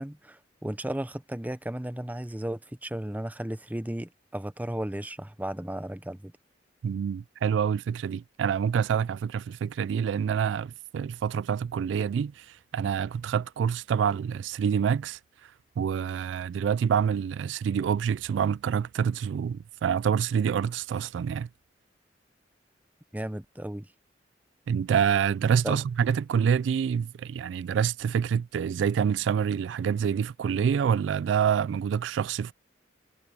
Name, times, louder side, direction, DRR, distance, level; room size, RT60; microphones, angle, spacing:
voice 1, 0.0-6.3 23.1-23.9 25.6-25.8, right 1 dB, 10° right, 0.7 m, -34 dB
voice 2, 6.8-21.5 24.7-32.5, right 7 dB, 90° right, 0.3 m, -27 dB
head